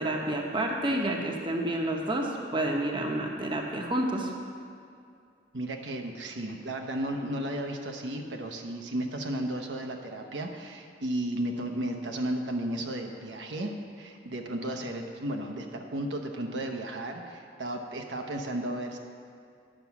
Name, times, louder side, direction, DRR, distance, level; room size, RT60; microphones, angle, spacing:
voice 1, 0.0-4.3, right 1 dB, 25° right, 1 dB, 0.9 m, -29 dB
voice 2, 5.5-19.0, right 1 dB, 75° right, 3 dB, 0.9 m, -34 dB
10.0 x 6.0 x 7.0 m, 2.4 s
head